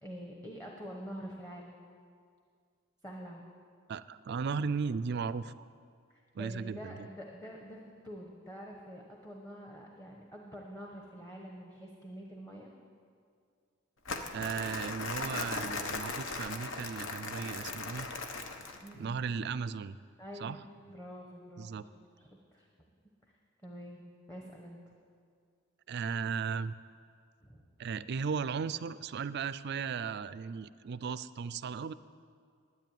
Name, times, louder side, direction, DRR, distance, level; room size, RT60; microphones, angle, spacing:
voice 1, 0.0-1.8 3.0-3.4 6.1-12.7 18.8-19.2 20.2-20.6 20.9-21.8 22.2-22.7 23.6-24.0 24.3-24.9 27.4-27.6, equal, 15° left, 0 dB, 1.1 m, -46 dB
voice 2, 3.9-5.5 6.3-7.1 14.3-18.1 18.7-20.0 20.4-20.6 21.6-21.8 25.9-26.7 27.8-31.9, right 5 dB, 55° right, 16 dB, 0.4 m, -36 dB
Crumpling crinkling, 14.1-18.9, left 3 dB, 70° left, 1.0 m, -38 dB
10.5 x 9.5 x 9.1 m, 2.2 s
head